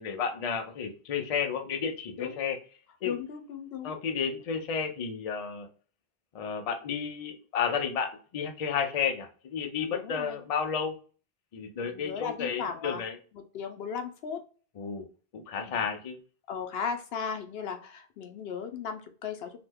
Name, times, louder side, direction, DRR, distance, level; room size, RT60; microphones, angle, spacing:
voice 1, 0.0-2.6 3.0-3.2 3.8-5.7 6.3-11.0 11.5-13.2 14.8-15.1 15.3-16.2, left 6 dB, 50° left, 4 dB, 0.5 m, -32 dB
voice 2, 3.0-4.0 9.9-10.4 11.8-13.0 13.3-14.4 15.6-15.8 16.5-19.6, left 6 dB, 75° left, 6 dB, 0.8 m, -36 dB
2.9 x 2.1 x 3.3 m, 0.39 s
omnidirectional pair, 1.0 m